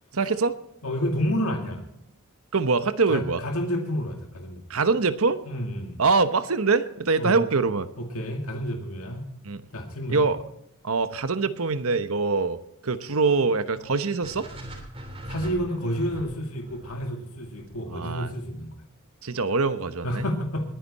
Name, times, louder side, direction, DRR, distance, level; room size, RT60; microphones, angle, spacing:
voice 1, 0.1-0.5 2.5-3.4 4.7-5.4 6.0-7.9 9.5-9.6 10.1-10.4 10.8-12.6 12.8-14.4 17.9-18.3 19.2-20.3, right 4 dB, 70° right, 11 dB, 1.0 m, -24 dB
voice 2, 0.8-1.8 3.1-4.6 5.4-6.0 7.2-7.4 8.0-9.3 9.7-10.2 15.3-18.8 20.0-20.7, equal, 75° left, 3 dB, 2.2 m, -30 dB
sound 1, 14.2-18.4, right 1 dB, 25° right, 3.1 m, -41 dB
21.0 x 10.0 x 4.2 m, 0.79 s
head